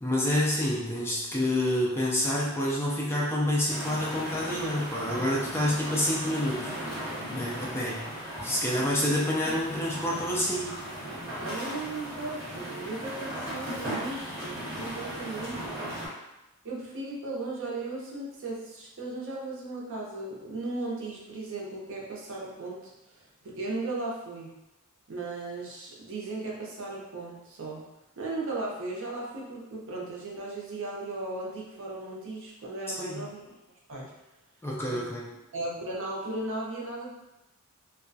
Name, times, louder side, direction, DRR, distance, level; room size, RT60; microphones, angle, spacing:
voice 1, 0.0-6.7 7.3-8.1 8.4-10.8 33.0-33.2 34.6-35.2, left 1 dB, 10° left, -4 dB, 0.3 m, -28 dB
sound 1, 3.7-16.1, equal, 10° right, 1.3 m, -37 dB
voice 2, 11.4-16.0 16.6-24.5 25.1-27.8 28.2-33.5 33.9-34.1 34.9-35.0 35.5-37.1, right 2 dB, 60° right, -3 dB, 0.6 m, -36 dB
2.3 x 2.2 x 2.6 m, 0.94 s
head